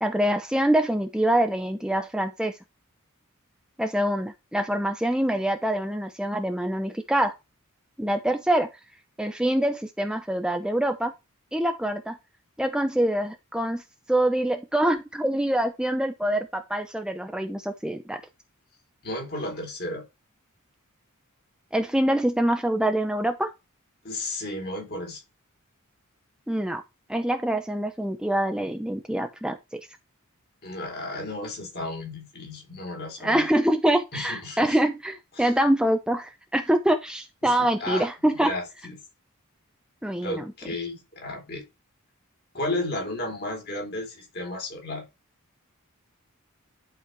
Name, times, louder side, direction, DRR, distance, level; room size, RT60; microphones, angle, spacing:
voice 1, 0.0-2.5 3.8-7.3 8.0-8.7 9.2-11.1 11.5-12.2 12.6-13.8 14.1-18.2 21.7-23.5 26.5-26.8 27.1-29.8 33.2-38.5 40.0-40.5, right 1 dB, 5° right, 0.6 m, -25 dB
voice 2, 19.0-20.0 24.0-25.2 30.6-33.5 34.1-34.8 35.4-35.5 37.4-38.1 38.4-39.0 40.2-41.7 42.5-45.1, left 2 dB, 50° left, 3.8 m, -33 dB
11.0 x 4.9 x 3.4 m
head